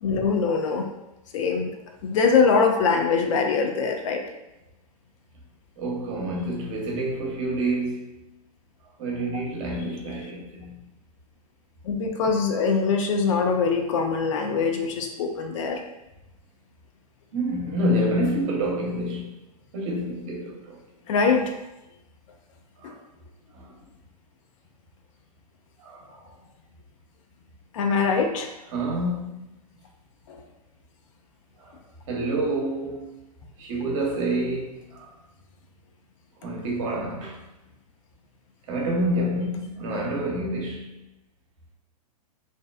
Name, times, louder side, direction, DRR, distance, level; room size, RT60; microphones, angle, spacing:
voice 1, 0.0-0.8 1.3-1.7 2.0-4.2 11.8-15.8 21.1-21.5 22.8-22.9 27.7-28.5 30.3-30.4, left 5 dB, 55° left, 3 dB, 0.4 m, -23 dB
voice 2, 5.8-8.1 9.0-10.8 17.3-19.4 19.7-20.8 22.8-23.0 23.5-23.7 25.8-26.3 28.7-29.5 31.6-31.7 32.1-33.0 33.6-35.1 36.4-37.4 38.7-41.0, right 1 dB, 55° right, -1 dB, 0.7 m, -28 dB
2.5 x 2.1 x 2.3 m, 0.93 s
hypercardioid pair, 110°, 20 cm